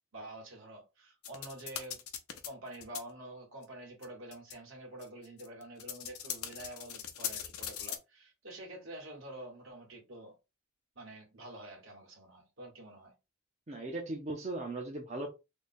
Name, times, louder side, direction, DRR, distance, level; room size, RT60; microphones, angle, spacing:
voice 1, 0.1-2.0 2.4-10.3 10.9-13.1, right 1 dB, 65° right, 1.6 m, -47 dB
sound 1, 1.2-2.5 2.7-3.0 3.6-3.7 4.0-4.1 4.3-4.5 5.0-8.0, left 9 dB, 90° left, 0.7 m, -40 dB
voice 2, 13.7-15.3, right 2 dB, 30° right, 0.6 m, -38 dB
3.3 x 2.2 x 4.2 m
head